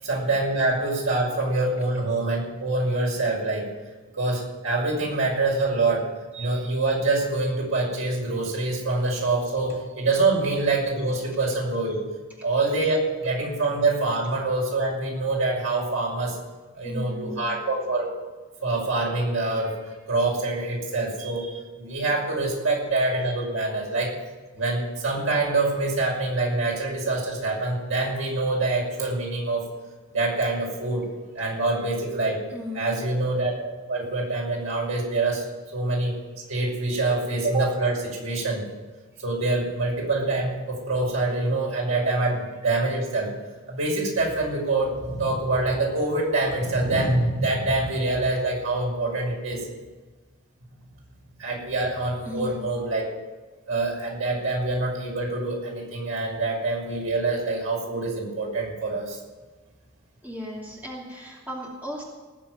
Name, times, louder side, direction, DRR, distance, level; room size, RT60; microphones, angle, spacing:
voice 1, 0.0-3.7 4.1-6.0 6.3-12.0 12.4-16.4 16.8-18.1 18.6-24.1 24.5-29.6 30.1-31.0 31.3-32.4 32.7-35.4 35.7-36.1 36.5-38.7 39.2-43.3 43.7-49.7 51.4-53.1 53.7-59.2, right 2 dB, 85° right, -2 dB, 5.8 m, -25 dB
voice 2, 16.8-17.5 32.5-33.0 52.3-52.6 60.2-62.0, left 1 dB, 10° right, -3 dB, 2.6 m, -36 dB
18.5 x 7.3 x 8.2 m, 1.3 s
head